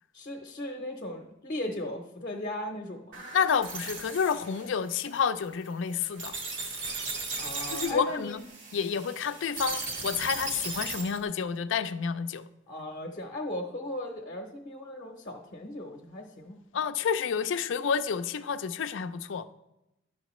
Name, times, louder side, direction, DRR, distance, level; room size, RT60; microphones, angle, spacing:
voice 1, 0.1-3.2 7.4-8.4 12.7-16.6, left 1 dB, 50° left, 0.7 m, -37 dB
sound 1, 3.1-11.2, right 3 dB, 75° right, 1.4 m, -37 dB
voice 2, 3.3-6.3 7.7-8.4 8.7-12.4 16.7-19.4, left 6 dB, 85° left, 0.4 m, -29 dB
10.5 x 6.4 x 3.1 m
head